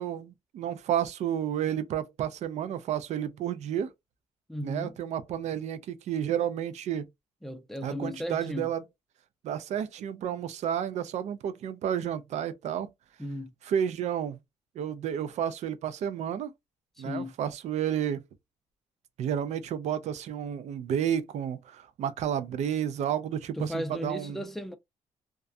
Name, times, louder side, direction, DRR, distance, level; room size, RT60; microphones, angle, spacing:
voice 1, 0.0-3.9 4.6-7.1 7.8-8.8 9.4-12.9 13.6-14.4 14.8-16.5 17.0-18.2 19.2-24.4, right 9 dB, 70° right, 0.4 m, -31 dB
voice 2, 4.5-4.9 7.4-8.7 13.2-13.5 17.0-17.3 23.5-24.8, left 1 dB, ahead, 0.5 m, -35 dB
2.3 x 2.2 x 2.5 m
cardioid pair, 105°, 12 cm